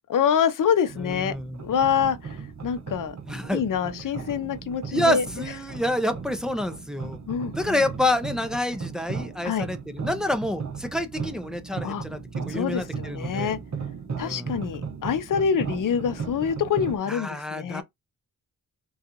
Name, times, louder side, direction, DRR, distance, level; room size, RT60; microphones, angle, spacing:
voice 1, 0.1-1.3 1.6-3.1 3.5-5.2 7.3-7.8 9.4-9.7 11.8-12.0 12.5-13.6 14.2-17.8, left 7 dB, 70° left, 0.6 m, -26 dB
sound 1, 0.9-17.0, right 5 dB, 55° right, 1.0 m, -36 dB
voice 2, 1.0-1.6 3.3-3.6 4.9-7.2 7.5-12.2 12.5-13.5 14.2-14.6 17.1-17.8, left 1 dB, ahead, 0.5 m, -28 dB
3.8 x 2.4 x 2.8 m
wide cardioid pair, 110°, 33 cm